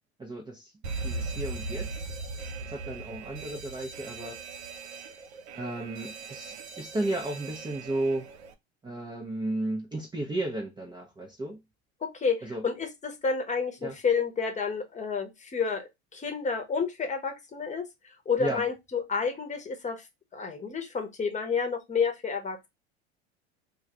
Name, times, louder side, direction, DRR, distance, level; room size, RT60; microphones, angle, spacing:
voice 1, 0.2-0.7 1.0-2.0 2.7-4.4 5.5-8.3 8.8-11.6 12.4-12.6 13.8-14.0 18.4-18.6, right 2 dB, 15° right, 0.6 m, -33 dB
Alarm, 0.8-8.5, right 3 dB, 85° right, 0.6 m, -39 dB
voice 2, 12.0-17.8 18.3-20.0 20.3-22.7, left 5 dB, 20° left, 0.9 m, -30 dB
2.4 x 2.3 x 4.0 m
hypercardioid pair, 90°, 32 cm